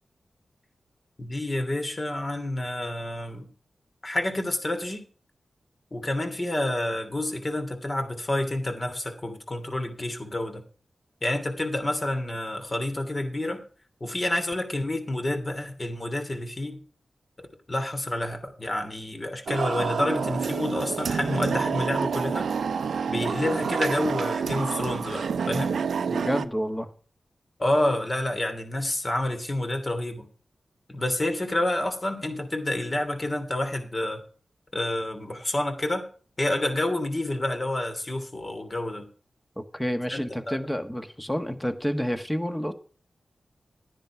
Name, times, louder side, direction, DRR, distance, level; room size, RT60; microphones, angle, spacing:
voice 1, 1.2-3.5 4.0-5.0 5.9-10.6 11.2-13.6 14.0-16.8 17.7-22.5 23.1-25.8 27.6-30.3 30.9-34.2 34.7-36.0 36.4-39.1 40.1-40.6, left 1 dB, 35° left, 2.9 m, -29 dB
sound 1, 19.5-26.4, right 6 dB, 85° right, 0.6 m, -28 dB
voice 2, 26.1-26.9 39.6-42.7, equal, 10° left, 1.5 m, -29 dB
11.0 x 10.0 x 4.8 m
cardioid pair, 55°, 0 cm